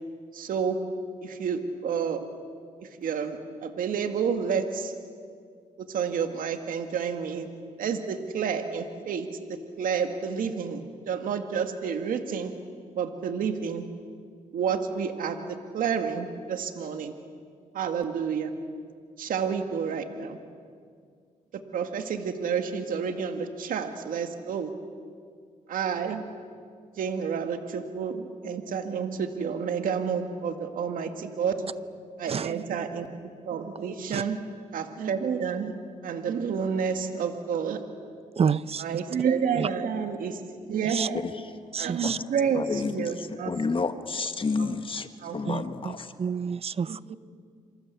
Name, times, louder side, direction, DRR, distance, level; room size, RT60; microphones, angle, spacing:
voice 1, 0.3-0.8 1.2-2.2 2.8-4.9 5.8-7.5 7.8-12.5 12.9-13.9 14.5-17.1 17.7-18.5 19.2-20.4 21.5-24.7 25.7-26.2 27.0-31.7 32.2-34.4 34.7-35.7 36.0-37.8 38.8-40.4 40.7-41.2 41.8-43.5 44.6-44.8 45.2-45.4 46.9-47.2, right 6 dB, 80° right, 6 dB, 2.1 m, -30 dB
voice 2, 38.4-39.0 39.6-39.7 40.9-41.1 41.7-42.2 45.5-47.0, right 6 dB, 45° right, 18 dB, 0.7 m, -29 dB
voice 3, 42.5-45.1 45.3-46.1, left 4 dB, 40° left, 9 dB, 1.5 m, -30 dB
28.0 x 25.0 x 8.4 m, 2.1 s
cardioid pair, 80°, 14 cm